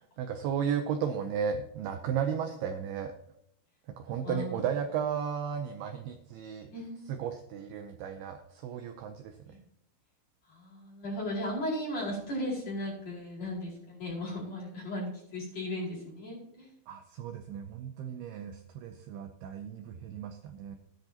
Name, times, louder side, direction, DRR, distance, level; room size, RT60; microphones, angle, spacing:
voice 1, 0.2-3.1 4.0-6.7 7.1-9.3 16.9-20.8, right 7 dB, 85° right, 6 dB, 2.2 m, -34 dB
voice 2, 4.1-4.7 6.7-7.2 9.5-9.6 10.5-16.7, left 1 dB, 35° left, -5 dB, 5.7 m, -36 dB
16.0 x 10.5 x 2.9 m, 0.74 s
omnidirectional pair, 5.6 m